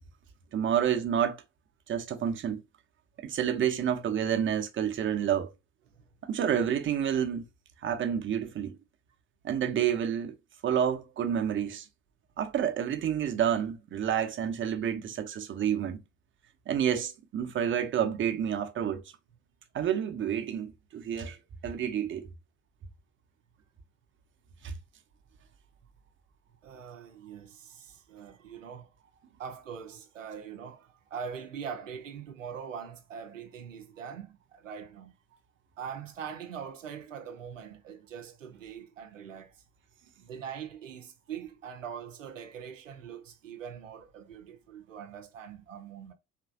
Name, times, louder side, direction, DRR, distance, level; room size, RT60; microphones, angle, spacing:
voice 1, 0.5-1.4 1.9-2.6 3.2-5.5 6.2-7.4 7.8-8.8 9.4-10.3 10.6-11.9 12.4-16.0 16.7-19.0 19.7-21.4 21.6-22.3 24.6-24.7, right 9 dB, 30° right, 0.8 m, -29 dB
voice 2, 26.6-28.9 29.4-35.1 35.8-39.5 40.2-46.1, right 7 dB, 80° right, 0.6 m, -42 dB
4.4 x 3.3 x 2.3 m
figure-of-eight pair, 60°, 38 cm